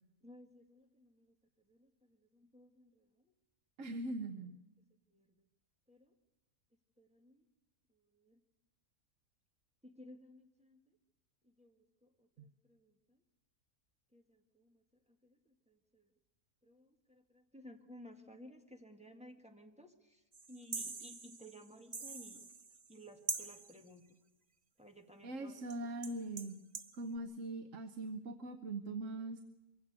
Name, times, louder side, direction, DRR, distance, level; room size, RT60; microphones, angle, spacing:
voice 1, 0.2-1.3 1.7-3.1 3.8-4.1 5.1-5.4 5.9-6.1 7.0-7.4 8.2-8.4 9.8-10.8 11.6-12.3 12.7-13.2 14.1-14.8 15.2-16.1 16.6-20.2 20.5-22.4 22.9-24.0 24.8-25.6, equal, 5° right, 3 dB, 1.8 m, -57 dB
voice 2, 3.8-4.5 12.4-12.5 25.2-26.6 26.9-29.4, right 2 dB, 65° right, 8 dB, 1.3 m, -41 dB
sound 1, 20.3-23.0 23.3-23.8 25.7-25.8 26.0-27.0, right 4 dB, 30° right, 1.0 m, -44 dB
23.5 x 16.5 x 8.2 m, 1.0 s
omnidirectional pair, 1.5 m